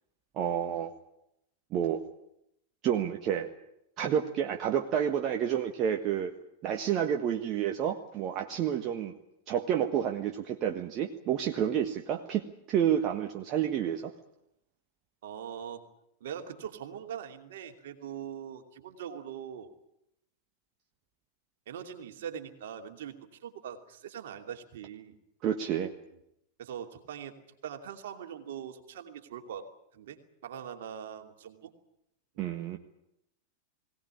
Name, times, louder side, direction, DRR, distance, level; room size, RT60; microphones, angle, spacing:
voice 1, 0.3-0.9 1.7-2.0 2.8-3.5 4.0-6.3 6.6-9.1 9.5-14.1 25.4-25.9 32.4-32.8, right 9 dB, 35° right, 4 dB, 1.5 m, -29 dB
voice 2, 15.2-15.9 16.2-19.7 21.7-25.1 26.6-27.3 27.6-29.7 29.9-31.7, right 8 dB, 55° right, 5 dB, 2.7 m, -42 dB
21.5 x 18.0 x 10.0 m, 0.81 s
figure-of-eight pair, 90°, 0 cm